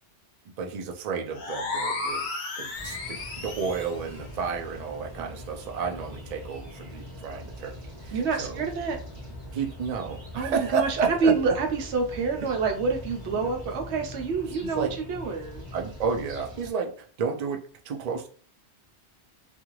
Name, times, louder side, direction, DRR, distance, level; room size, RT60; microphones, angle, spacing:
voice 1, 0.6-2.3 2.6-8.6 9.5-11.6 13.4-13.5 14.5-15.0 15.7-18.3, right 5 dB, 55° right, 2 dB, 0.4 m, -31 dB
sound 1, 1.3-4.0, left 3 dB, 50° left, 0.7 m, -33 dB
sound 2, 2.7-16.7, left 1 dB, 25° right, 0.8 m, -42 dB
voice 2, 8.1-9.0 10.3-15.6, right 4 dB, 75° right, 3 dB, 0.9 m, -27 dB
2.5 x 2.3 x 3.0 m, 0.42 s
omnidirectional pair, 1.2 m